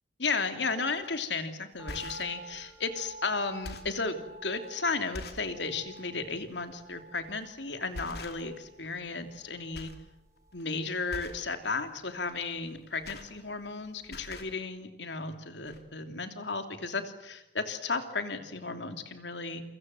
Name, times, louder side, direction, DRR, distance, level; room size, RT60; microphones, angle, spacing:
voice 1, 0.2-9.9 10.5-19.6, left 4 dB, 80° left, 8 dB, 3.0 m, -34 dB
sound 1, 1.0-1.1 1.7-2.4 3.0-3.2 3.5-4.0 4.6-4.7 5.1-5.5 5.9-6.1 7.3-7.5 7.9-8.7 9.0-9.5 9.7-10.1 10.4-10.6 11.1-11.5 12.7-13.8 14.0-14.6 15.3-15.4 15.7-15.8, left 2 dB, 60° left, 3.2 m, -44 dB
sound 2, 1.8-14.1 14.3-14.4, right 2 dB, 20° right, 5.9 m, -51 dB
28.5 x 25.5 x 7.8 m, 0.89 s
head